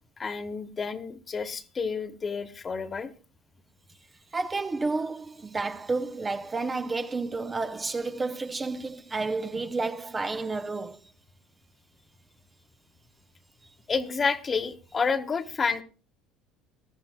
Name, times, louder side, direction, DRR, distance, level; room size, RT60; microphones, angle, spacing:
voice 1, 0.2-3.1 13.9-15.8, left 5 dB, 30° left, 1.3 m, -29 dB
voice 2, 4.3-11.0, right 3 dB, 20° right, 0.8 m, -31 dB
19.5 x 13.0 x 2.2 m
supercardioid pair, 85°, 0 cm